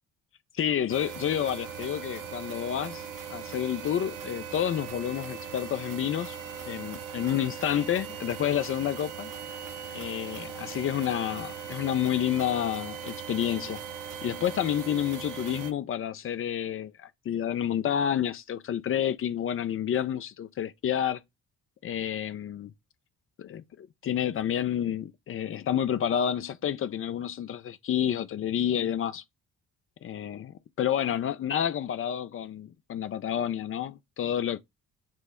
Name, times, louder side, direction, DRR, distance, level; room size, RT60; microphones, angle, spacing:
voice 1, 0.5-3.0 3.3-6.4 6.7-9.3 9.9-13.8 14.2-21.2 21.8-22.7 23.4-29.2 30.0-34.6, left 10 dB, 30° left, 0.4 m, -29 dB
sound 1, 0.9-15.7, right 7 dB, 45° right, 0.8 m, -39 dB
4.6 x 2.0 x 4.2 m
hypercardioid pair, 40°, 45 cm